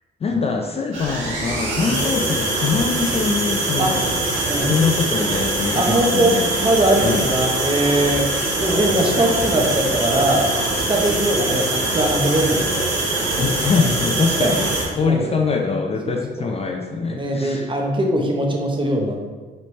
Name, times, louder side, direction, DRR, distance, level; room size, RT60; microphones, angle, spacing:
voice 1, 0.2-4.1 4.6-6.5 7.0-7.3 13.4-14.7 14.9-17.7, left 5 dB, 30° left, 2 dB, 0.4 m, -23 dB
sound 1, 0.9-14.8, right 2 dB, 85° right, 1.3 m, -23 dB
voice 2, 5.7-8.3 8.6-10.5 10.8-12.9 13.7-13.9 14.3-14.5 15.0-15.3 16.1-16.6 17.1-19.2, right 1 dB, 25° right, 1 dB, 0.7 m, -21 dB
4.1 x 3.1 x 3.1 m, 1.4 s
cardioid pair, 90°, 20 cm